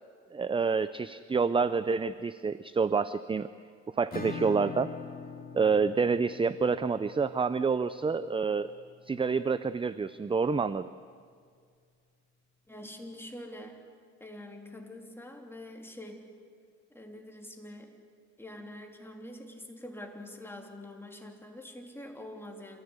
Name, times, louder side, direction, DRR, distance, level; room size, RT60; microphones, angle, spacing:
voice 1, 0.3-3.5 3.9-4.9 5.5-8.7 9.1-10.9, right 5 dB, 20° right, 14 dB, 0.5 m, -28 dB
Acoustic guitar / Strum, 4.1-9.5, left 5 dB, 30° left, 3.5 m, -44 dB
voice 2, 12.7-13.8 14.2-16.2 16.9-18.0 18.4-22.8, left 1 dB, 10° left, 1 dB, 3.3 m, -45 dB
28.0 x 15.0 x 8.2 m, 2.1 s
cardioid pair, 90°, 30 cm